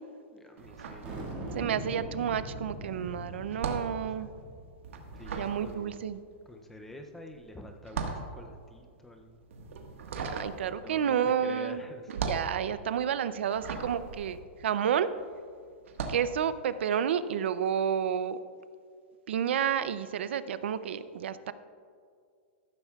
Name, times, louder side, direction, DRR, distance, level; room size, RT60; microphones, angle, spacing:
voice 1, 0.3-1.1 4.9-6.0 6.5-9.4 10.7-12.1, left 1 dB, 5° left, 4 dB, 0.4 m, -47 dB
sound 1, 0.6-1.8 2.1-15.3 15.8-16.3, right 5 dB, 85° right, 1.5 m, -39 dB
sound 2, 1.0-5.7, right 1 dB, 20° right, 1.9 m, -41 dB
voice 2, 1.5-4.3 5.3-6.2 10.1-11.8 12.3-15.1 16.1-18.4 19.3-21.5, right 8 dB, 65° right, 14 dB, 0.5 m, -30 dB
14.0 x 12.5 x 2.3 m, 2.2 s
supercardioid pair, 180°, 7 cm